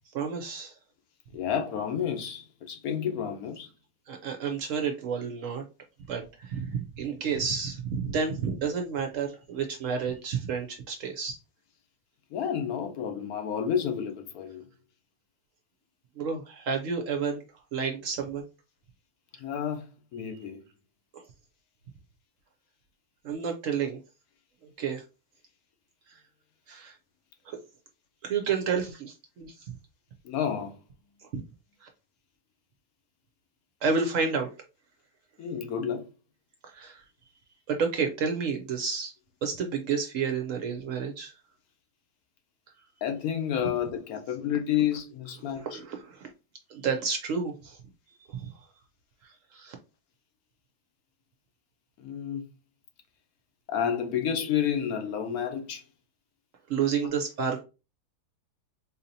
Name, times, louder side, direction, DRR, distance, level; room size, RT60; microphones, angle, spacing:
voice 1, 0.1-0.7 4.1-5.6 6.1-11.4 16.2-17.4 17.7-18.5 21.1-21.2 23.2-24.0 24.6-25.0 26.1-26.2 26.7-27.0 27.5-27.6 28.2-29.7 31.2-31.3 31.8-31.9 33.8-34.5 36.6-37.0 37.7-39.1 39.4-41.3 45.5-46.3 46.7-47.8 48.3-48.5 49.2-49.8 56.7-57.6, right 6 dB, 65° right, 0.8 m, -30 dB
voice 2, 1.3-3.7 12.3-14.7 19.4-20.6 30.2-30.8 35.4-36.1 43.0-45.8 52.0-52.4 53.7-55.8, left 8 dB, 70° left, 1.1 m, -30 dB
4.2 x 2.7 x 2.7 m
omnidirectional pair, 1.7 m